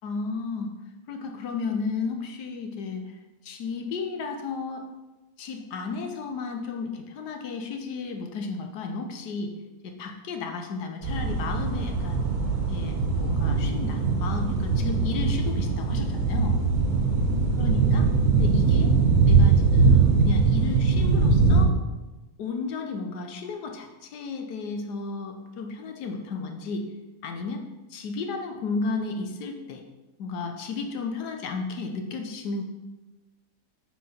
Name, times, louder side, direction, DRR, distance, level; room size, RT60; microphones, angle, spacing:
voice 1, 0.0-0.7 1.1-3.1 3.4-4.9 5.4-9.5 9.8-12.2 12.7-16.6 17.6-18.1 18.3-18.9 19.2-21.7 22.4-26.9 27.2-27.6 27.9-29.8 30.2-32.6, left 4 dB, 70° left, 5 dB, 1.4 m, -33 dB
sound 1, 11.0-21.6, right 4 dB, 55° right, 1.6 m, -21 dB
8.7 x 4.8 x 4.3 m, 1.1 s
omnidirectional pair, 1.9 m